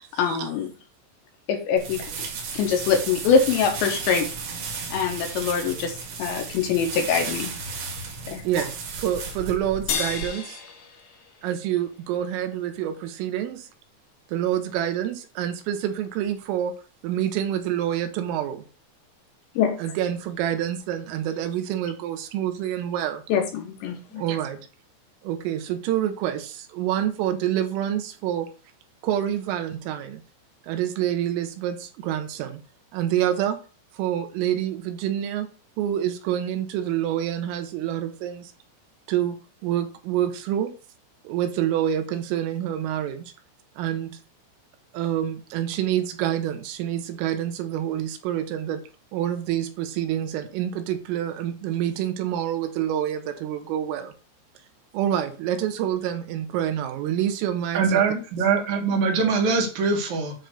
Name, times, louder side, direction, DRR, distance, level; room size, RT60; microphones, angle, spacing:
voice 1, 0.2-0.7 1.5-2.3 2.5-4.3 4.9-7.5 8.3-8.7 19.6-19.8 23.3-24.2, left 6 dB, 75° left, 3 dB, 3.1 m, -24 dB
sound 1, 1.8-10.2, right 5 dB, 65° right, 4.3 m, -34 dB
voice 2, 8.5-10.6 11.4-13.7 14.3-16.7 17.0-18.7 19.8-23.2 24.2-24.6 25.2-28.5 29.0-30.2 30.7-32.6 32.9-33.6 34.0-35.5 35.8-38.5 39.1-39.4 39.6-40.7 41.3-43.3 43.8-44.1 44.9-48.8 49.1-54.1 54.9-58.0, right 11 dB, 85° right, 8 dB, 3.6 m, -27 dB
sound 2, 9.9-12.5, left 6 dB, 55° left, 2.4 m, -33 dB
voice 3, 57.7-60.3, right 5 dB, 50° right, 1 dB, 2.5 m, -22 dB
9.7 x 3.3 x 6.7 m, 0.35 s
omnidirectional pair, 5.6 m